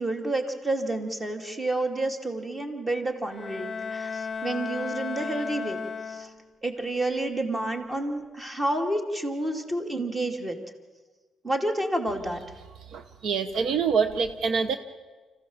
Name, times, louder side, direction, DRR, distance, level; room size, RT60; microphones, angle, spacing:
voice 1, 0.0-6.3 6.6-10.6 11.4-12.4, right 1 dB, 20° right, 4 dB, 2.5 m, -29 dB
Bowed string instrument, 3.3-6.7, left 5 dB, 30° left, 0.9 m, -35 dB
voice 2, 12.9-14.8, right 6 dB, 75° right, 9 dB, 0.9 m, -25 dB
25.5 x 15.5 x 7.2 m, 1.3 s
cardioid pair, 90°, 0 cm